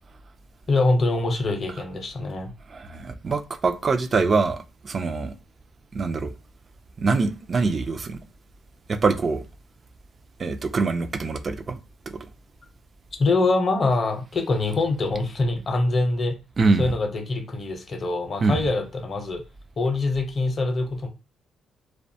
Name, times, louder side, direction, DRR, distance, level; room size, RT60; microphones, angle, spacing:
voice 1, 0.7-2.5 13.2-16.4 16.8-19.4 19.8-21.1, left 2 dB, 40° left, 0.6 m, -24 dB
voice 2, 2.7-5.3 5.9-6.3 7.0-8.2 8.9-9.4 10.4-11.8 12.1-12.3 16.6-16.9 18.4-18.6, right 4 dB, 40° right, 0.3 m, -24 dB
2.4 x 2.2 x 2.6 m
cardioid pair, 90°, 0 cm